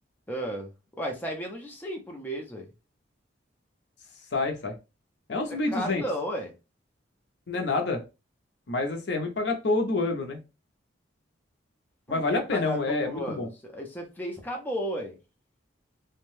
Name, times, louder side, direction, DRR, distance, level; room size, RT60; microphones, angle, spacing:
voice 1, 0.3-0.7 1.0-2.7 5.7-6.5 12.1-15.1, equal, 10° left, 0.5 m, -34 dB
voice 2, 4.3-4.8 5.3-6.0 7.5-8.0 8.7-10.4 12.1-13.5, left 3 dB, 60° left, 0.6 m, -27 dB
2.6 x 2.1 x 3.1 m
head